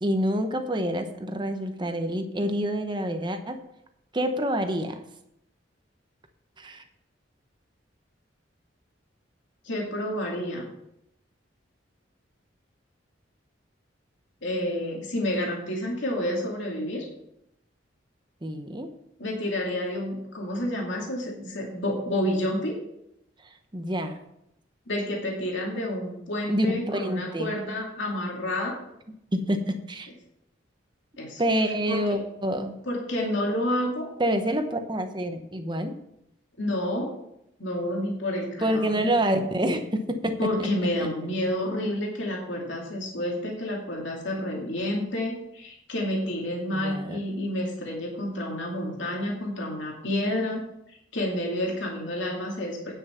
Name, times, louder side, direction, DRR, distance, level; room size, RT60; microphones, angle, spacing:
voice 1, 0.0-3.6 4.1-5.0 6.6-6.8 18.4-18.9 23.7-24.2 26.5-27.5 29.3-30.1 31.4-32.7 34.2-36.0 38.6-40.7 46.7-47.2, right 1 dB, 25° right, 7 dB, 0.9 m, -27 dB
voice 2, 9.6-10.7 14.4-17.1 19.2-22.7 24.9-28.8 31.2-31.4 31.9-32.2 32.9-34.1 36.6-37.1 37.6-39.1 40.4-50.6 51.1-52.9, left 1 dB, 70° left, -1 dB, 2.5 m, -29 dB
9.7 x 6.5 x 5.7 m, 0.80 s
head